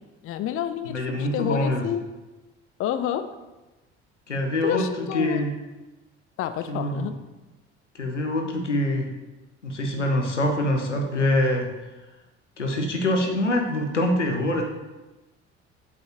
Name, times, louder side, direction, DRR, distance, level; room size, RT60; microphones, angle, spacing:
voice 1, 0.2-2.0 2.8-3.3 4.6-5.4 6.4-7.1, left 10 dB, 40° left, 11 dB, 0.6 m, -28 dB
voice 2, 0.9-1.9 4.3-4.9 5.1-5.5 6.7-7.1 7.9-9.1 9.6-11.7 12.6-14.6, left 1 dB, 90° left, 3 dB, 0.9 m, -24 dB
8.2 x 7.9 x 2.9 m, 1.1 s
figure-of-eight pair, 55°, 35 cm